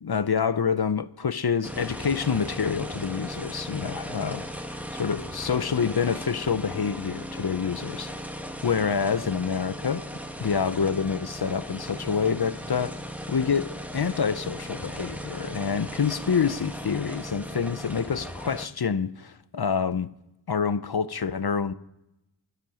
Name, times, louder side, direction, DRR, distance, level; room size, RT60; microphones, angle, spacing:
voice 1, 0.0-4.4 4.9-8.1 8.6-10.0 10.4-13.0 13.3-20.1 20.5-21.7, left 6 dB, 55° left, 0.7 m, -27 dB
sound 1, 1.6-18.7, equal, 5° right, 1.4 m, -37 dB
16.5 x 12.0 x 6.4 m
wide cardioid pair, 45°, 44 cm